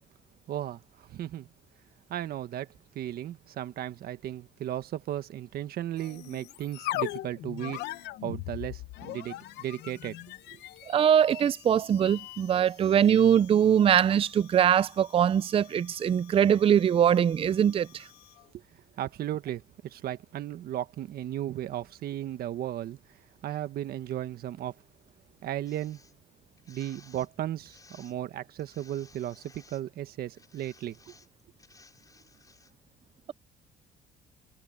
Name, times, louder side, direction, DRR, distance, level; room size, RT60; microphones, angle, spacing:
voice 1, 0.5-1.5 2.1-2.7 2.9-7.8 8.2-10.2 10.5-10.6 19.0-23.0 23.4-24.7 25.4-26.0 26.7-31.2, right 12 dB, 65° right, 1.6 m, -35 dB
sound 1, 6.0-18.5, left 16 dB, 85° left, 0.9 m, -42 dB
voice 2, 10.9-18.1, right 9 dB, 35° right, 0.5 m, -22 dB
sound 2, 25.7-26.1 26.6-27.3 27.7-28.2 28.6-29.8 30.4-32.7, left 3 dB, 20° left, 7.2 m, -57 dB
cardioid pair, 110°, 17 cm